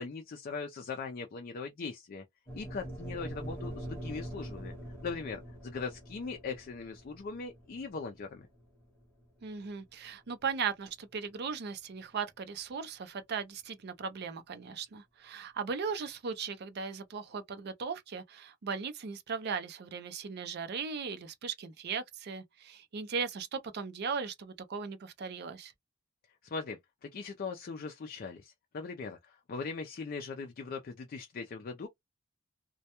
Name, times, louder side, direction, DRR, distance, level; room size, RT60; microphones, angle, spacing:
voice 1, 0.0-2.2 2.5-4.7 5.0-8.5 26.4-31.9, left 4 dB, 45° left, 0.4 m, -40 dB
sound 1, 2.5-10.7, equal, 10° left, 1.0 m, -44 dB
voice 2, 9.4-25.7, right 5 dB, 55° right, 0.5 m, -37 dB
2.2 x 2.1 x 2.8 m
head